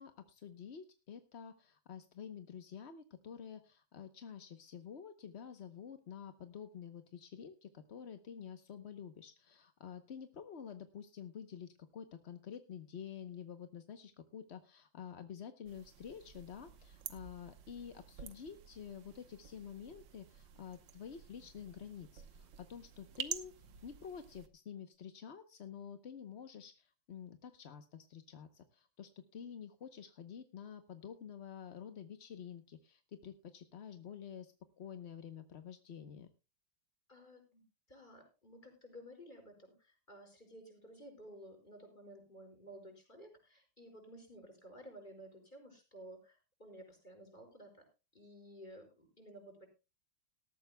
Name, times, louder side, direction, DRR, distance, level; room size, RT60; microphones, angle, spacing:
voice 1, 0.0-23.5 23.8-36.3, left 8 dB, 50° left, 8 dB, 0.9 m, -49 dB
sound 1, 15.7-24.5, right 9 dB, 70° right, 1.8 m, -49 dB
voice 2, 37.1-37.6 37.9-47.8 48.1-49.7, right 1 dB, 25° left, 3 dB, 5.5 m, -54 dB
19.0 x 13.5 x 2.2 m, 0.29 s
omnidirectional pair, 2.1 m